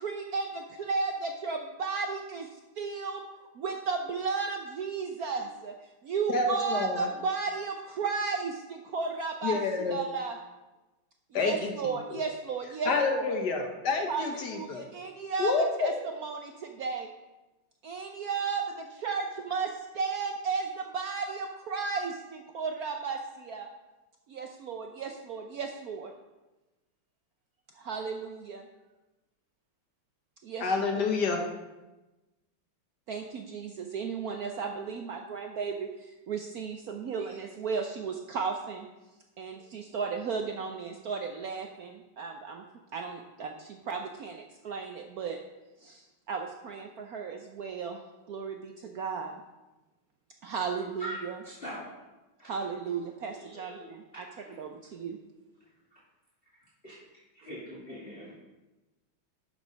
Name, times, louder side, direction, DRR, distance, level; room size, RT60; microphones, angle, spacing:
voice 1, 0.0-3.2 3.5-5.7 6.0-10.4 11.3-13.4 14.1-15.5 15.8-17.1 17.8-23.7 24.3-26.1 27.7-28.7 30.4-31.0 33.1-38.9 39.4-42.6 42.9-45.4 45.8-48.0 48.3-49.3 50.4-51.4 52.4-54.2 54.6-55.2, right 5 dB, 80° right, 4 dB, 0.8 m, -34 dB
voice 2, 6.3-7.1 9.4-10.0 11.3-11.7 12.1-12.2 12.8-14.8 15.4-15.9 30.6-31.4, left 4 dB, 55° left, 4 dB, 1.5 m, -28 dB
voice 3, 51.0-51.9 52.4-52.8 53.3-54.7 55.9-56.0 56.8-57.0 57.3-58.3, equal, 25° left, -7 dB, 2.2 m, -43 dB
12.0 x 5.3 x 5.2 m, 1.1 s
omnidirectional pair, 2.4 m